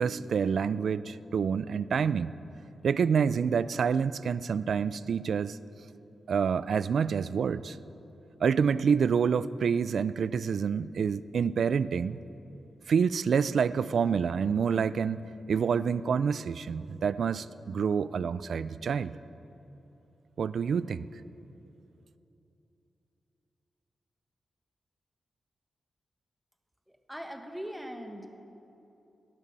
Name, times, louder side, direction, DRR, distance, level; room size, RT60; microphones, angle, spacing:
voice 1, 0.0-2.3 2.8-5.6 6.3-7.8 8.4-12.2 12.9-19.1 20.4-21.1, right 6 dB, 75° right, 16 dB, 0.4 m, -27 dB
voice 2, 27.1-28.3, equal, ahead, 4 dB, 1.5 m, -40 dB
18.0 x 11.0 x 7.4 m, 3.0 s
wide cardioid pair, 105°, 0 cm